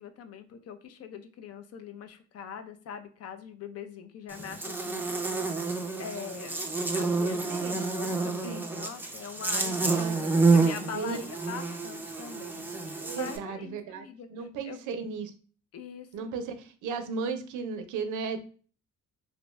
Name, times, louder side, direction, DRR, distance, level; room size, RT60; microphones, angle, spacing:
voice 1, 0.0-5.1 6.0-10.0 10.5-14.8 15.7-16.3, left 7 dB, 55° left, 9 dB, 0.5 m, -42 dB
Buzz, 4.3-13.4, right 3 dB, 5° right, 0.4 m, -29 dB
voice 2, 7.5-7.8 8.4-8.7 9.9-10.4 10.8-11.2 12.8-15.3 16.1-18.4, right 5 dB, 85° right, 9 dB, 0.5 m, -35 dB
2.6 x 2.2 x 3.0 m, 0.40 s
cardioid pair, 90°, 30 cm